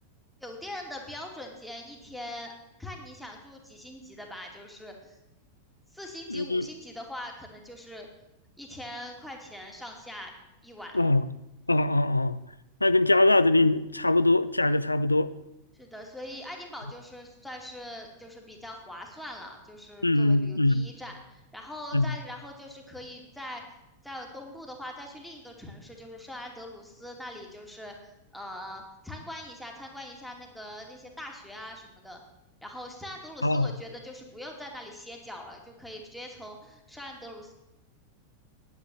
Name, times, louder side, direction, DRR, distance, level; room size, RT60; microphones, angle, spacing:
voice 1, 0.4-2.5 2.8-5.2 5.9-8.1 8.6-10.3 10.6-10.9 15.7-23.6 24.0-32.2 32.6-37.5, left 1 dB, ahead, 2.7 m, -42 dB
voice 2, 6.3-6.7 10.9-11.3 11.7-12.4 12.8-15.3 20.0-20.9 21.9-22.0 33.4-33.7, left 2 dB, 85° left, 0.5 m, -22 dB
10.0 x 9.7 x 7.8 m
figure-of-eight pair, 90°, 0 cm